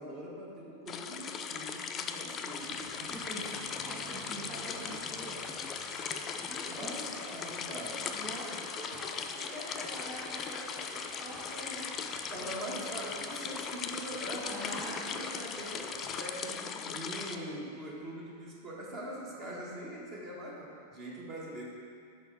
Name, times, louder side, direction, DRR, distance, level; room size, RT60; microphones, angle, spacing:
voice 1, 0.0-3.1 4.7-5.1 6.7-8.2 12.3-21.7, right 1 dB, 35° right, -3 dB, 1.3 m, -43 dB
sound 1, 0.9-17.4, left 6 dB, 25° left, 0.4 m, -39 dB
sound 2, 2.6-16.2, right 1 dB, 65° right, 1.3 m, -49 dB
voice 2, 3.1-5.4 6.4-7.5 8.1-12.0 12.4-12.8 14.5-15.0, equal, 10° right, -9 dB, 1.8 m, -45 dB
6.8 x 4.5 x 4.9 m, 2.4 s
figure-of-eight pair, 90°, 0 cm